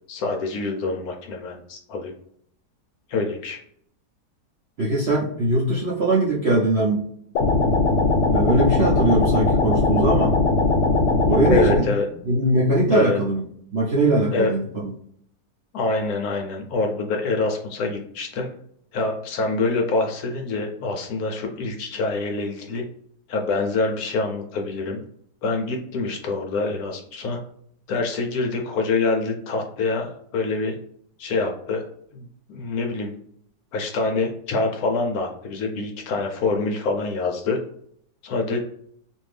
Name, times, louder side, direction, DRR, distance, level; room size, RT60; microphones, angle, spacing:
voice 1, 0.1-2.1 3.1-3.6 11.5-12.0 12.9-13.2 14.3-14.5 15.7-18.5 18.9-22.8 23.3-25.0 25.4-27.4 27.9-30.8 31.2-31.9 32.1-33.2 33.7-37.6 38.2-38.6, left 3 dB, 70° left, 3 dB, 1.0 m, -25 dB
voice 2, 4.8-7.0 8.3-10.3 11.3-11.8 12.3-13.4 13.7-14.9, right 2 dB, 65° right, -5 dB, 0.6 m, -21 dB
sound 1, 7.3-11.8, left 3 dB, 85° left, 1.2 m, -19 dB
2.7 x 2.6 x 3.2 m, 0.66 s
omnidirectional pair, 1.8 m